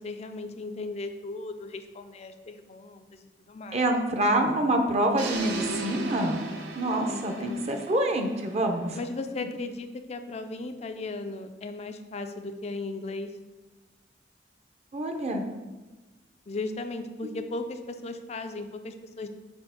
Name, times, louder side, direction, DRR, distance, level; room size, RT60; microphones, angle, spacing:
voice 1, 0.0-3.9 7.1-7.8 8.9-13.3 16.5-19.3, left 2 dB, 40° left, 7 dB, 0.4 m, -36 dB
voice 2, 3.7-6.5 6.7-9.0 14.9-15.4, right 1 dB, 35° right, 4 dB, 0.7 m, -26 dB
sound 1, 5.2-9.2, right 3 dB, 85° right, 0.8 m, -37 dB
4.4 x 4.4 x 5.7 m, 1.2 s
head